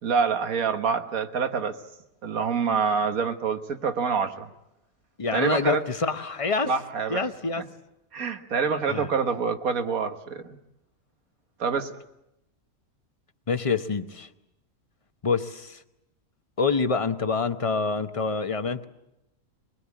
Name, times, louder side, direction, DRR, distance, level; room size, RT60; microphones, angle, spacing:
voice 1, 0.0-1.8 2.2-4.5 5.3-5.8 6.7-7.3 8.1-10.6 11.6-11.9, right 5 dB, 85° right, 8 dB, 1.8 m, -26 dB
voice 2, 5.2-6.7 7.1-7.6 8.9-9.1 13.5-14.3 15.2-15.8 16.6-18.8, left 4 dB, 30° left, 9 dB, 0.9 m, -26 dB
23.0 x 22.5 x 8.4 m, 0.86 s
omnidirectional pair, 1.4 m